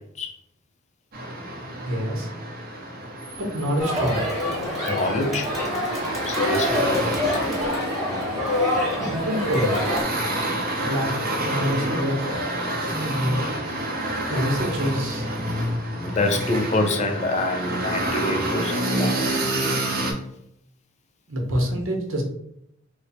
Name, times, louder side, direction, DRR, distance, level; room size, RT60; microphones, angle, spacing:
sound 1, 1.1-20.1, right 1 dB, 45° right, 0.7 m, -28 dB
voice 1, 1.8-2.3 3.3-4.2 9.0-10.0 10.8-11.1 11.4-12.2 13.0-13.5 14.3-15.3 21.3-22.2, equal, 80° right, 1 dB, 0.9 m, -26 dB
Crowd, 3.8-10.0, left 1 dB, ahead, 1.0 m, -26 dB
voice 2, 4.9-5.5 6.3-6.8 15.9-19.2, left 2 dB, 35° left, 4 dB, 0.5 m, -26 dB
3.1 x 2.0 x 4.0 m, 0.76 s
head